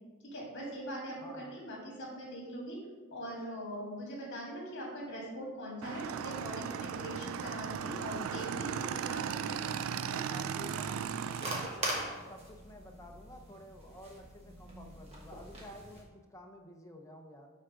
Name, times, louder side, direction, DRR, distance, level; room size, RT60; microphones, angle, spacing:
voice 1, 0.2-2.8 3.1-9.7 10.0-10.2, equal, 55° left, -3 dB, 2.0 m, -42 dB
voice 2, 1.2-1.6 10.2-11.1 11.4-17.5, left 1 dB, 15° left, 2 dB, 0.7 m, -51 dB
Motorcycle / Engine, 5.8-11.7, right 8 dB, 65° right, 0.3 m, -37 dB
sound 1, 6.2-16.0, right 1 dB, 30° right, 1.4 m, -44 dB
7.4 x 3.7 x 4.9 m, 1.3 s
head